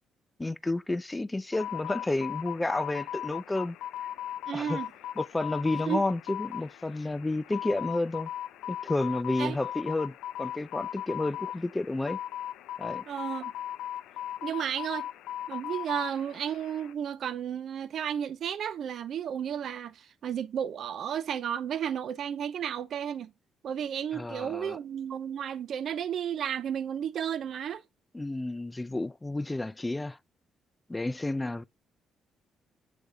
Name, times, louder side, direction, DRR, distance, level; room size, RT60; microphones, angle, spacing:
voice 1, 0.4-3.8 4.5-4.8 5.2-8.3 8.7-12.2 12.8-13.0 24.1-24.8 28.1-30.2 30.9-31.6, left 2 dB, 15° left, 0.3 m, -31 dB
sound 1, 1.5-16.9, left 12 dB, 90° left, 0.5 m, -38 dB
voice 2, 4.5-4.9 5.9-6.0 9.4-9.6 13.1-13.5 14.4-15.1 15.5-23.3 23.6-27.8, right 9 dB, 65° right, 0.4 m, -33 dB
8.1 x 3.4 x 3.7 m
cardioid pair, 90°, 0 cm